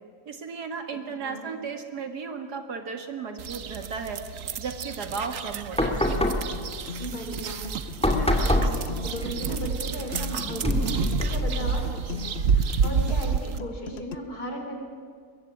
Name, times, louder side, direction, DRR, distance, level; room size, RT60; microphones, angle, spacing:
voice 1, 0.3-4.2 4.6-6.2, right 5 dB, 85° right, 6 dB, 2.7 m, -35 dB
voice 2, 1.2-1.5 7.0-10.9 11.2-11.8 12.1-14.8, equal, 75° left, 3 dB, 4.9 m, -36 dB
sound 1, 3.4-13.6, right 6 dB, 60° right, 1.3 m, -30 dB
sound 2, 5.7-13.2, left 1 dB, 5° left, 2.4 m, -28 dB
sound 3, 6.1-14.1, left 6 dB, 50° left, 0.9 m, -39 dB
23.0 x 21.5 x 8.8 m, 2.1 s
omnidirectional pair, 1.7 m